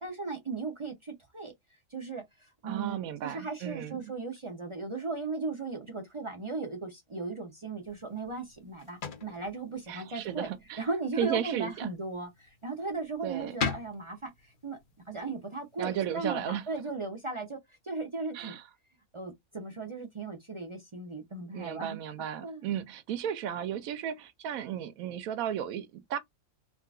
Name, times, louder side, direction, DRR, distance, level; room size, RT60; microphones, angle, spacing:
voice 1, 0.0-1.5 1.9-2.2 2.6-3.0 3.2-10.5 10.8-14.8 15.1-17.6 17.8-18.6 19.1-22.0 22.4-22.7, right 3 dB, 45° right, 0.4 m, -37 dB
voice 2, 2.6-4.1 9.9-10.8 11.2-11.9 13.2-13.6 15.8-16.7 18.3-18.6 21.5-26.2, right 9 dB, 80° right, 1.0 m, -34 dB
sound 1, 7.8-17.0, left 6 dB, 45° left, 0.7 m, -43 dB
3.7 x 2.3 x 2.3 m
omnidirectional pair, 1.5 m